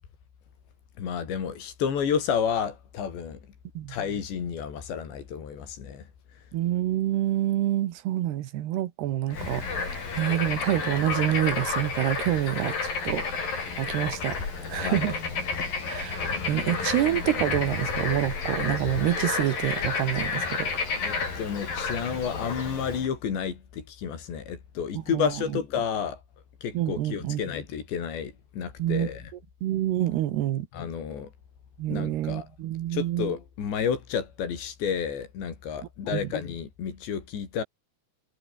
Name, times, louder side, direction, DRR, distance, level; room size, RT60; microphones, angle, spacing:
voice 1, 1.0-3.4 3.9-6.1 6.3-6.4 14.7-15.2 16.2-16.3 21.0-26.2 26.6-29.3 30.7-31.3 31.9-32.5 32.9-37.6, left 7 dB, 75° left, 6.4 m, -31 dB
voice 2, 6.5-14.4 14.7-15.1 15.9-20.7 25.1-25.3 26.7-27.4 28.8-29.1 29.6-30.7 31.8-33.3 36.1-36.3, right 13 dB, 70° right, 3.4 m, -27 dB
Bird / Frog, 9.3-23.1, left 4 dB, 50° left, 7.6 m, -31 dB
omnidirectional pair, 5.1 m